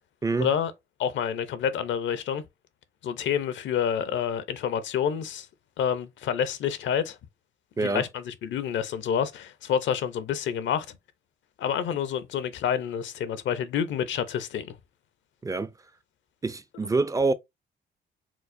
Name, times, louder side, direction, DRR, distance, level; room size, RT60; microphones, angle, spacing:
voice 1, 0.4-0.7 1.0-2.4 3.0-5.5 5.8-7.2 7.8-10.9 11.6-14.8, left 8 dB, 70° left, 0.6 m, -28 dB
voice 2, 7.8-8.1 15.4-15.7 16.4-17.3, right 3 dB, 15° right, 0.4 m, -26 dB
4.5 x 2.0 x 2.6 m
cardioid pair, 90°, 20 cm